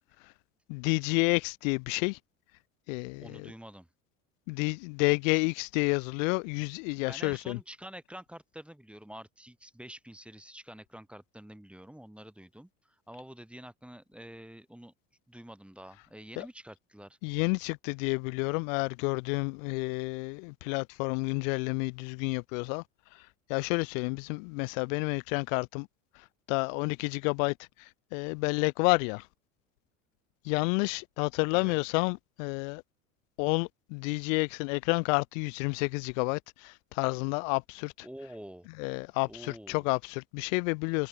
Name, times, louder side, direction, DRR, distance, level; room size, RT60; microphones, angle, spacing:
voice 1, 0.7-2.2 2.9-3.5 4.5-7.6 16.4-16.5 17.2-22.8 23.1-23.2 23.5-25.9 26.5-29.3 30.4-32.8 33.4-38.1 38.8-41.1, left 33 dB, 70° left, 1.4 m, -30 dB
voice 2, 3.2-3.9 7.1-14.9 15.3-17.2 31.5-31.8 38.0-38.7 39.3-39.9, equal, 5° right, 2.9 m, -47 dB
hypercardioid pair, 85°, 41 cm